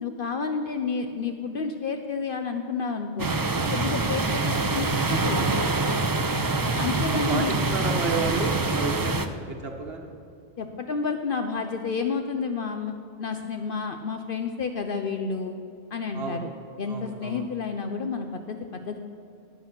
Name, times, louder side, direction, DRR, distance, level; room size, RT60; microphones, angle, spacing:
voice 1, 0.0-3.3 3.7-5.4 6.8-7.5 10.6-15.6 15.9-16.5 16.8-19.0, left 5 dB, 60° left, 6 dB, 0.9 m, -30 dB
sound 1, 3.2-9.3, right 3 dB, 25° right, 0.5 m, -25 dB
voice 2, 6.3-6.6 7.1-10.1 16.1-16.5 16.9-17.4, right 4 dB, 65° right, 2 dB, 1.3 m, -32 dB
18.5 x 8.2 x 5.9 m, 2.5 s
omnidirectional pair, 1.1 m